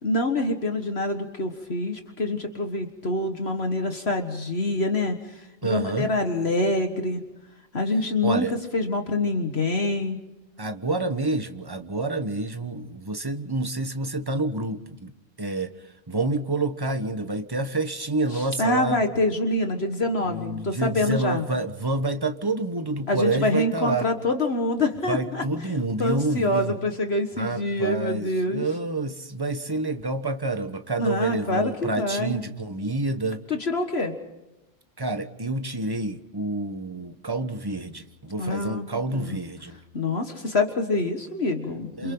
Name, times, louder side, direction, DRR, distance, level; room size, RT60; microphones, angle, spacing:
voice 1, 0.0-7.2 7.7-10.2 18.3-21.4 23.1-25.4 26.0-28.7 31.0-32.4 33.5-34.1 38.4-38.9 39.1-39.4 39.9-42.1, left 2 dB, 55° left, 6 dB, 1.9 m, -26 dB
voice 2, 5.6-6.1 8.2-8.5 10.6-15.1 15.4-15.7 16.1-19.0 20.3-24.1 25.1-26.7 27.4-33.4 35.0-39.8 42.0-42.1, right 2 dB, 20° right, 8 dB, 1.2 m, -28 dB
28.5 x 28.0 x 3.9 m, 0.98 s
omnidirectional pair, 1.3 m